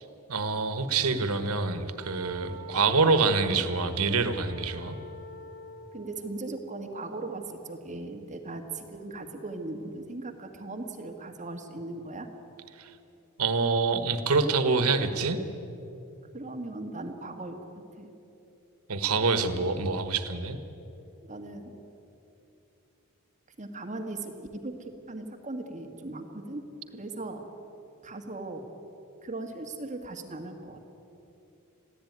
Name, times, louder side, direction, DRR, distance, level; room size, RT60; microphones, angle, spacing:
voice 1, 0.3-5.0 12.8-12.9 13.4-15.4 18.9-20.6, right 4 dB, 85° right, 10 dB, 1.4 m, -26 dB
Wind instrument woodwind instrument, 1.9-6.1, left 2 dB, 65° left, 3.2 m, -44 dB
voice 2, 5.9-12.3 16.3-17.7 18.0-18.1 21.2-21.7 23.6-26.6 26.9-27.4 28.0-28.6 29.2-30.8, right 2 dB, 35° right, 4 dB, 1.7 m, -38 dB
22.0 x 15.5 x 9.5 m, 2.9 s
head